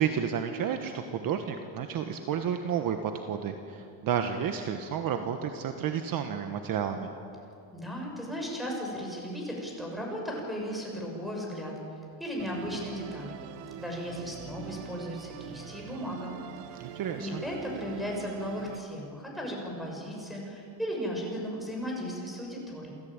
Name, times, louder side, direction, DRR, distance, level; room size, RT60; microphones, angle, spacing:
voice 1, 0.0-7.1 16.8-17.4, right 8 dB, 45° right, 6 dB, 1.4 m, -31 dB
voice 2, 7.7-11.7 12.2-13.4 13.8-16.3 16.7-16.8 17.2-22.9, equal, ahead, -1 dB, 6.5 m, -36 dB
Musical instrument, 12.4-18.8, right 10 dB, 80° right, 1.4 m, -44 dB
28.5 x 15.0 x 9.0 m, 2.6 s
cardioid pair, 135°, 47 cm